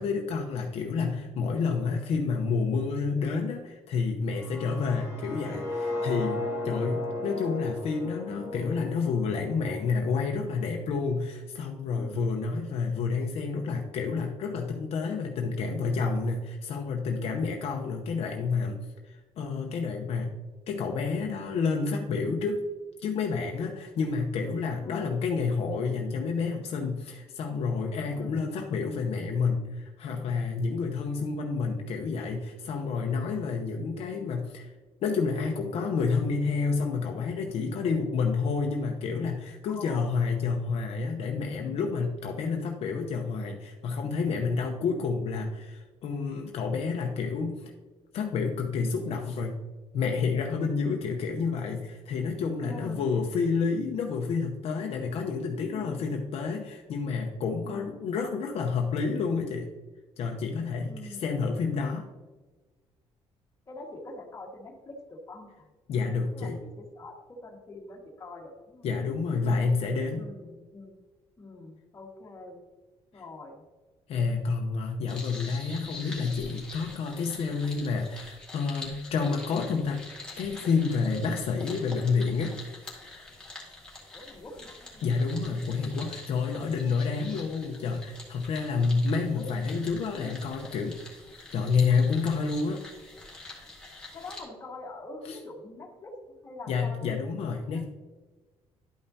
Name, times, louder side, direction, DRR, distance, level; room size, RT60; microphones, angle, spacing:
voice 1, 0.0-18.8 19.1-20.3 20.7-22.7 23.0-34.7 35.0-47.7 48.1-49.6 49.9-59.7 60.2-62.1 65.9-66.6 68.8-70.2 74.1-80.1 80.4-82.6 85.0-91.0 91.5-92.8 95.3-95.4 96.7-97.8, left 4 dB, 65° left, 2 dB, 0.8 m, -29 dB
sound 1, 4.3-10.3, left 2 dB, 25° right, 1.8 m, -35 dB
voice 2, 7.0-7.5 11.9-12.3 24.8-25.2 28.1-28.5 39.7-40.2 41.6-41.9 52.6-53.2 55.6-56.1 57.6-58.0 60.8-61.3 63.7-65.7 66.3-68.9 70.1-71.0 71.4-72.6 73.1-73.6 84.1-85.1 89.4-89.5 90.2-90.3 94.1-97.9, left 2 dB, 25° left, -1 dB, 1.5 m, -45 dB
sound 2, 75.1-94.4, left 2 dB, 5° left, 1.8 m, -45 dB
11.5 x 5.5 x 2.7 m, 1.3 s
cardioid pair, 150°, 11 cm